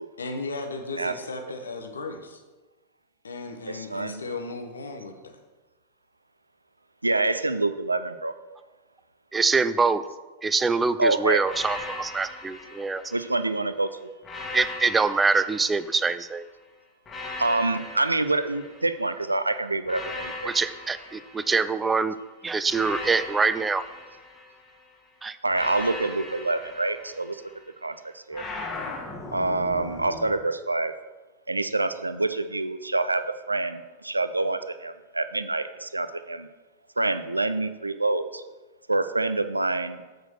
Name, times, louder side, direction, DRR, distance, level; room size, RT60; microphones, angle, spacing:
voice 1, 0.2-2.4 3.2-5.4, left 3 dB, 75° left, 5 dB, 0.9 m, -35 dB
voice 2, 3.7-4.2 7.0-8.3 11.0-11.4 13.1-13.9 17.4-20.5 25.4-27.4 27.8-28.4 29.3-30.9 31.5-36.5 37.0-38.4 38.9-40.0, right 2 dB, 80° right, 12 dB, 0.4 m, -26 dB
voice 3, 9.3-10.0 10.4-13.0 14.5-16.5 20.5-22.2 22.4-23.8 25.2-25.4, right 4 dB, 15° right, 14 dB, 0.4 m, -24 dB
sound 1, 11.4-13.6 14.2-16.4 17.1-19.2 19.8-22.0 22.7-24.8 25.5-27.7 28.3-30.4, left 2 dB, 20° left, 1.4 m, -39 dB
7.4 x 4.7 x 6.3 m, 1.2 s
figure-of-eight pair, 90°, 0 cm